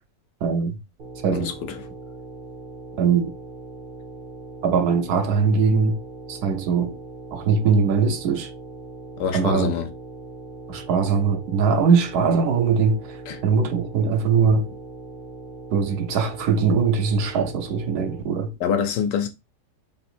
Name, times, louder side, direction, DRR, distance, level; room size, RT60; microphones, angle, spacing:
voice 1, 0.4-0.8 1.2-1.5 3.0-3.3 4.6-6.0 6.3-7.0 7.3-8.5 9.3-9.7 10.7-13.2 13.4-14.7 15.7-18.5, right 5 dB, 70° right, 1.1 m, -21 dB
sound 1, 1.0-18.2, right 2 dB, 50° right, 0.7 m, -40 dB
voice 2, 1.3-1.9 9.2-9.9 13.3-13.4 18.6-19.3, left 7 dB, 75° left, 1.3 m, -25 dB
3.7 x 2.6 x 4.3 m
omnidirectional pair, 1.9 m